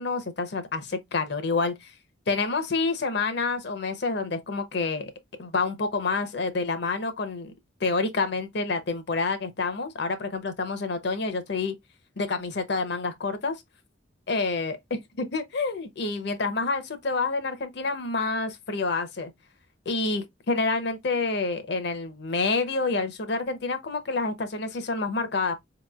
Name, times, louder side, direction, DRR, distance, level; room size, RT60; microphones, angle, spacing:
voice 1, 0.0-1.9 2.3-5.1 5.4-7.5 7.8-11.7 12.2-13.6 14.3-19.3 19.9-25.5, left 3 dB, 55° left, 0.7 m, -28 dB
4.7 x 2.9 x 2.3 m
head